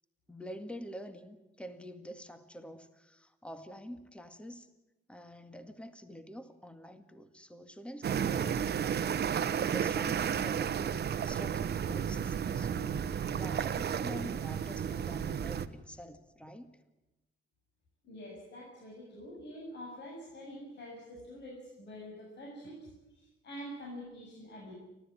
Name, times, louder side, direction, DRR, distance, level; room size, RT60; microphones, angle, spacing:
voice 1, 0.3-4.7 5.1-16.7, equal, 5° left, 8 dB, 1.9 m, -47 dB
sound 1, 8.0-15.7, right 8 dB, 55° right, 1.2 m, -32 dB
voice 2, 18.0-24.7, equal, 60° left, -2 dB, 7.4 m, -46 dB
29.5 x 13.0 x 9.9 m, 1.0 s
cardioid pair, 90°, 20 cm